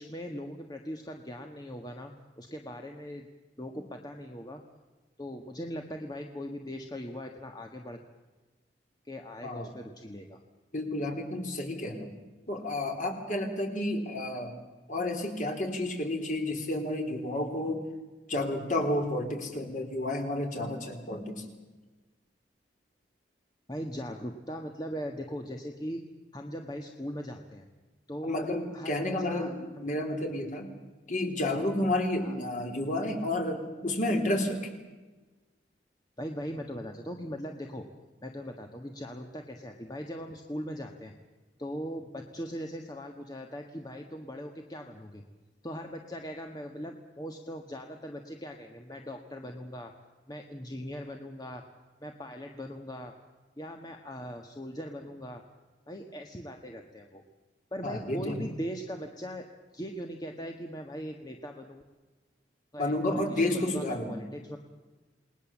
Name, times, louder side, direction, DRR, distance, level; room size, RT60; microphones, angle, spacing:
voice 1, 0.0-3.3 3.6-4.6 5.2-8.0 9.0-10.4 23.7-26.1 26.3-27.7 28.1-29.9 32.2-32.4 36.2-37.9 38.2-41.1 41.6-45.2 45.6-49.9 50.3-51.6 52.0-53.1 53.6-55.4 55.9-57.2 57.7-59.4 59.7-61.8 62.7-64.6, equal, 20° left, 3 dB, 1.5 m, -40 dB
voice 2, 10.7-12.1 12.5-14.5 14.9-17.8 18.3-21.5 28.2-30.7 31.1-34.7 57.8-58.4 62.8-64.2, left 1 dB, 45° left, 3 dB, 4.0 m, -31 dB
28.5 x 20.0 x 7.3 m, 1.2 s
head